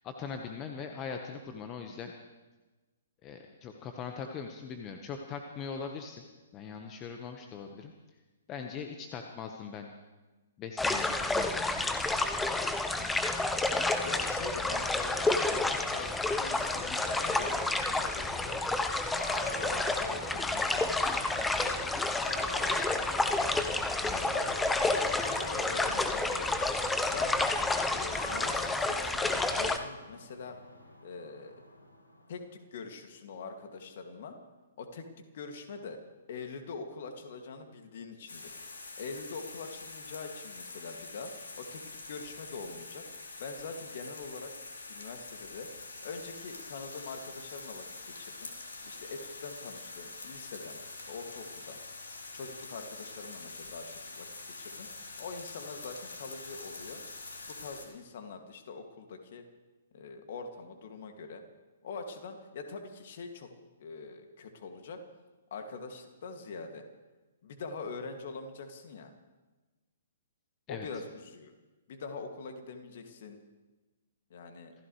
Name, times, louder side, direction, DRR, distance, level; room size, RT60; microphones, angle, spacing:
voice 1, 0.0-2.1 3.2-6.3 6.5-7.9 8.5-9.9 10.6-11.8 24.0-24.2 70.7-70.9, left 6 dB, 25° left, 4 dB, 1.3 m, -41 dB
sound 1, 10.8-29.8, left 2 dB, 5° left, 0.9 m, -30 dB
voice 2, 14.0-18.9 19.5-21.2 21.6-23.6 24.1-26.5 27.0-27.5 27.9-30.6 31.0-31.6 32.3-34.4 34.8-35.1 35.3-36.0 36.3-38.5 39.0-41.3 41.6-43.1 43.4-44.5 44.9-45.7 46.0-48.5 48.8-50.8 51.1-51.8 52.3-54.3 54.6-54.9 55.2-57.0 57.4-59.4 59.9-61.4 61.8-63.5 63.8-65.0 65.5-66.8 67.4-69.1 70.7-71.5 71.9-73.4 74.3-74.7, left 4 dB, 50° left, 5 dB, 2.3 m, -43 dB
sound 2, 18.9-32.5, left 1 dB, 85° left, 7.0 m, -46 dB
sound 3, 38.3-57.9, left 3 dB, 70° left, 3.6 m, -45 dB
27.0 x 15.5 x 3.3 m, 1.2 s
figure-of-eight pair, 120°, 0 cm